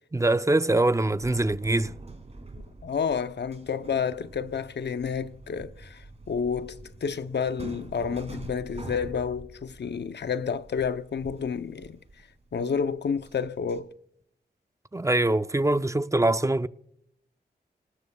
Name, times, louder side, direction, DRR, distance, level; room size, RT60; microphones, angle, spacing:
voice 1, 0.1-1.9 14.9-16.7, right 2 dB, 15° right, 0.5 m, -23 dB
sound 1, 1.2-13.8, right 2 dB, 35° right, 2.6 m, -45 dB
voice 2, 2.6-12.0 12.5-13.9, left 6 dB, 75° left, 0.7 m, -30 dB
29.5 x 19.0 x 2.3 m
wide cardioid pair, 70°, 18 cm